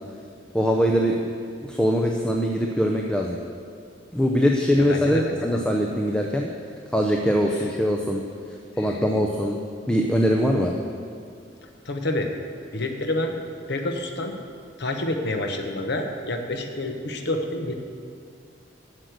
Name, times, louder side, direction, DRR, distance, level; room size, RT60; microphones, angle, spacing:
voice 1, 0.5-1.1 1.7-3.4 4.1-6.5 6.9-8.2 8.8-9.6 9.9-10.7, equal, 5° left, 1 dB, 0.5 m, -22 dB
voice 2, 4.8-5.4 7.5-7.7 8.7-9.2 11.6-12.3 12.7-13.4 13.7-14.4 14.8-17.7, left 1 dB, 65° left, 4 dB, 1.0 m, -28 dB
7.7 x 6.5 x 8.0 m, 2.4 s
head